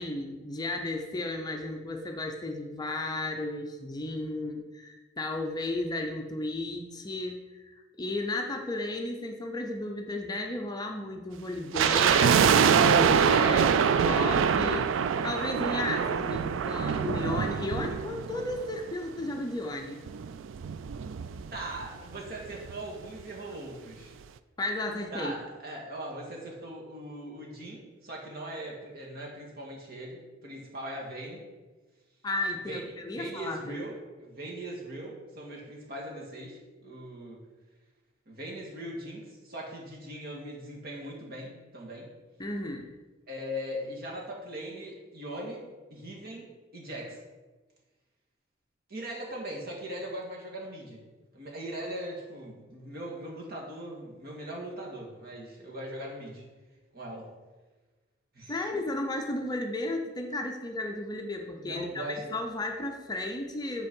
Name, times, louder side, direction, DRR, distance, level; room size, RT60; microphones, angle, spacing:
voice 1, 0.0-13.7 14.0-20.0 24.6-25.4 32.2-33.8 42.4-42.9 58.5-63.9, left 2 dB, 20° left, 3 dB, 0.6 m, -34 dB
sound 1, 11.7-19.0 19.3-19.4 20.1-21.9 22.1-22.2 22.5-22.8 23.2-23.3, right 7 dB, 75° right, 0.3 m, -25 dB
voice 2, 21.5-24.1 25.1-31.5 32.7-32.8 33.1-37.4 38.3-42.1 43.3-47.2 48.9-51.1 51.3-56.4 56.9-57.3 58.3-58.8 61.5-62.3, right 1 dB, 50° right, -3 dB, 1.9 m, -40 dB
8.3 x 4.4 x 5.4 m, 1.3 s
head